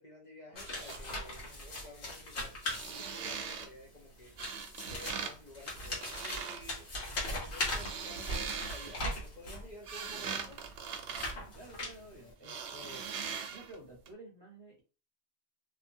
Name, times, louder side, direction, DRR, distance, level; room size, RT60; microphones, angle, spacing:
voice 1, 0.0-2.5 2.9-6.9 7.3-10.6, left 1 dB, 45° left, -3 dB, 0.7 m, -52 dB
sound 1, 0.5-1.0 2.5-3.7 4.4-5.3 5.6-6.6 7.4-9.1 9.6-12.0 12.4-13.8 14.1-14.2, right 6 dB, 85° right, 0.9 m, -41 dB
sound 2, 0.6-3.5 4.2-9.7 10.3-12.3, left 1 dB, 70° left, 1.4 m, -39 dB
voice 2, 11.5-13.0 13.5-14.8, right 1 dB, 25° right, -3 dB, 0.8 m, -51 dB
2.8 x 2.3 x 2.6 m, 0.34 s
omnidirectional pair, 1.2 m